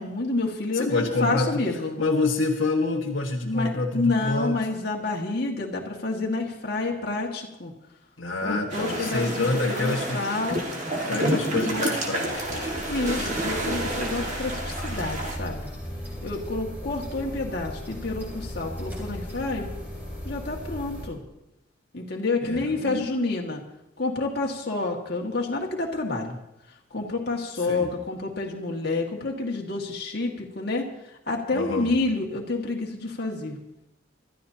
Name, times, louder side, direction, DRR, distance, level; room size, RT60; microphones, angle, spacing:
voice 1, 0.0-2.0 3.4-7.7 8.4-10.7 12.9-15.7 16.2-19.7 20.3-21.2 21.9-23.6 24.0-26.4 26.9-30.9 31.3-33.6, left 3 dB, 50° left, 0 dB, 1.9 m, -29 dB
voice 2, 0.7-1.7 2.0-4.6 8.2-10.2 11.0-12.7 22.4-23.1 27.7-27.9 31.5-31.9, left 3 dB, 75° left, -1 dB, 1.5 m, -27 dB
sound 1, 8.7-15.4, right 1 dB, 35° right, 1.9 m, -29 dB
sound 2, 12.3-21.1, equal, 10° right, 3.6 m, -36 dB
25.5 x 13.0 x 2.8 m, 0.88 s
head